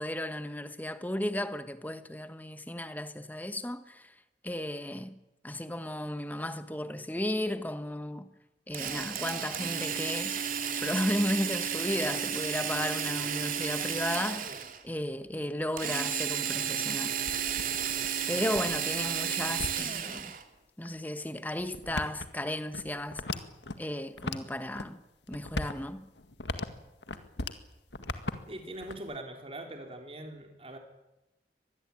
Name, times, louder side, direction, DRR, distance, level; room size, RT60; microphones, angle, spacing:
voice 1, 0.0-4.1 4.4-8.3 8.7-10.4 10.8-14.6 14.8-17.1 18.3-20.3 20.8-23.2 23.8-26.1, left 1 dB, 10° left, 1.2 m, -34 dB
Drill, 8.7-14.8 15.8-20.4, right 8 dB, 50° right, 2.6 m, -32 dB
sound 1, 17.2-20.2 20.9-21.0 21.6-23.8 24.2-24.9 25.2-27.6 27.9-29.2, left 2 dB, 85° left, 1.9 m, -38 dB
voice 2, 28.5-30.8, right 1 dB, 35° right, 4.3 m, -42 dB
24.5 x 20.5 x 8.9 m
head